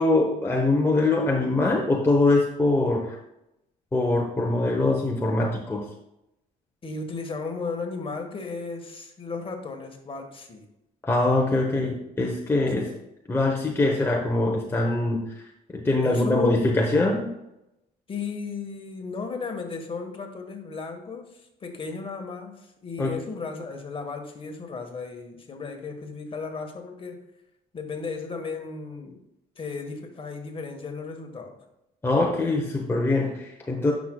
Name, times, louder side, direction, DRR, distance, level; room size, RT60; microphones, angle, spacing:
voice 1, 0.0-3.2 3.9-5.8 11.0-12.9 13.3-15.2 15.7-17.3 23.0-23.2 32.0-33.9, left 2 dB, 15° left, -1 dB, 0.9 m, -23 dB
voice 2, 6.8-10.6 12.8-13.0 16.0-16.8 18.1-27.3 27.7-29.2 29.5-31.6, left 4 dB, 30° left, 4 dB, 1.4 m, -35 dB
10.0 x 6.2 x 2.3 m, 0.87 s
cardioid pair, 110°, 17 cm